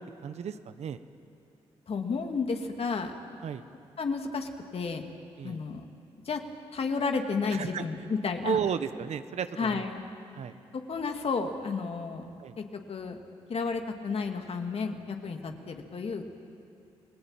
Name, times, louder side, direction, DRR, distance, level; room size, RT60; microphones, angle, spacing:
voice 1, 0.2-1.0 3.4-3.7 5.4-5.6 7.5-7.8 8.4-9.8 10.4-10.6 12.4-12.5, right 8 dB, 65° right, 11 dB, 1.1 m, -33 dB
voice 2, 1.9-3.1 4.0-5.0 5.4-5.8 6.2-6.4 6.7-8.6 9.6-10.0 10.7-12.2 12.6-13.2 13.5-16.4, left 4 dB, 55° left, 4 dB, 2.5 m, -32 dB
29.5 x 18.5 x 9.1 m, 2.7 s
supercardioid pair, 60°, 12 cm